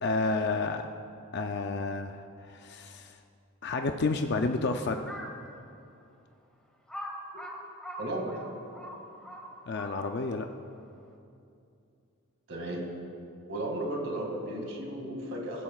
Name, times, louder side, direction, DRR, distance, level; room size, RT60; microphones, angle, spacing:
voice 1, 0.0-0.8 1.3-3.2 3.6-5.2 9.7-10.5, left 3 dB, 50° left, 5 dB, 0.5 m, -30 dB
Crow, 5.0-5.4 6.0-6.1 6.9-10.3, equal, 5° left, 1.5 m, -41 dB
voice 2, 8.0-8.4 12.5-12.9 13.5-15.6, right 1 dB, 60° right, 0 dB, 2.2 m, -34 dB
21.0 x 15.0 x 2.4 m, 2.6 s
head